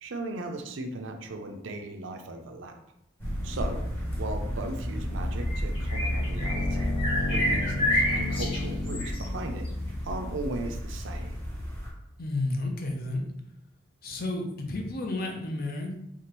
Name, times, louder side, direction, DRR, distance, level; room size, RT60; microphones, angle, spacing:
voice 1, 0.0-2.7 3.4-3.8 4.2-6.9 7.3-9.7 10.0-11.4, right 2 dB, 70° right, 5 dB, 0.6 m, -37 dB
sound 1, 3.2-11.9, equal, 10° left, 1.2 m, -34 dB
sound 2, 4.9-11.4, left 1 dB, 90° left, 0.8 m, -32 dB
sound 3, 5.4-6.7 7.0-9.2, left 1 dB, 30° left, 1.6 m, -29 dB
voice 2, 12.2-13.2 14.0-15.9, left 2 dB, 50° left, 2 dB, 0.7 m, -31 dB
4.9 x 2.9 x 3.0 m, 0.81 s
head